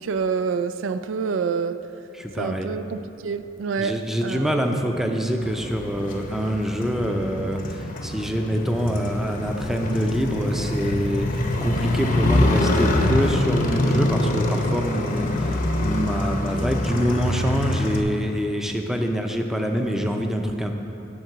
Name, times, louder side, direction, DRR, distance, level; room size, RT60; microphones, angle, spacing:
voice 1, 0.0-1.8 2.4-3.9 4.2-4.7, right 5 dB, 80° right, 11 dB, 0.4 m, -27 dB
voice 2, 2.1-2.7 3.8-20.7, equal, ahead, 3 dB, 0.5 m, -25 dB
Motorcycle, 5.4-18.0, left 1 dB, 45° left, 0.8 m, -24 dB
11.0 x 3.8 x 7.7 m, 2.8 s
head